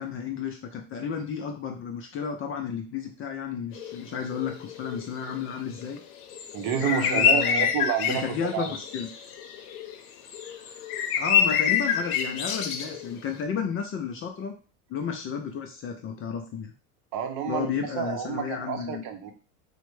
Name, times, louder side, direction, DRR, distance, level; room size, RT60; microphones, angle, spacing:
voice 1, 0.0-6.0 6.8-7.7 8.1-9.1 11.2-14.6 14.9-16.7 17.5-19.0, left 6 dB, 30° left, 3 dB, 0.4 m, -32 dB
sound 1, 3.8-4.0 4.3-10.0 10.3-13.1, left 8 dB, 80° left, 0.7 m, -27 dB
voice 2, 6.5-8.8 17.1-19.3, right 8 dB, 50° right, 5 dB, 0.8 m, -30 dB
3.1 x 2.1 x 3.1 m, 0.34 s
supercardioid pair, 110°, 45 cm